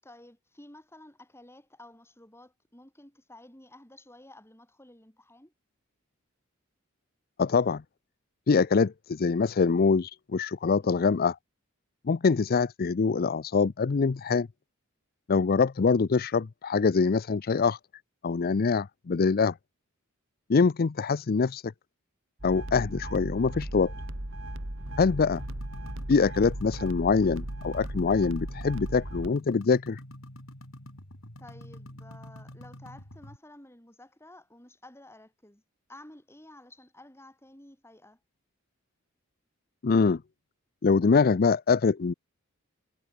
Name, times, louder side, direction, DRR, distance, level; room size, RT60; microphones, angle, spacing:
voice 1, 0.0-5.5 10.8-11.2 12.2-12.6 31.4-35.6 35.9-38.2, left 1 dB, 10° left, 6.9 m, -52 dB
voice 2, 7.4-7.8 8.5-11.3 12.0-14.5 15.3-17.8 18.2-19.5 20.5-21.6 22.4-23.9 25.0-25.4 26.1-30.0 39.8-40.2 40.8-42.1, left 4 dB, 45° left, 0.5 m, -24 dB
sound 1, 22.4-29.3, right 1 dB, 65° right, 3.1 m, -37 dB
sound 2, 24.9-33.4, left 1 dB, 75° left, 5.1 m, -47 dB
head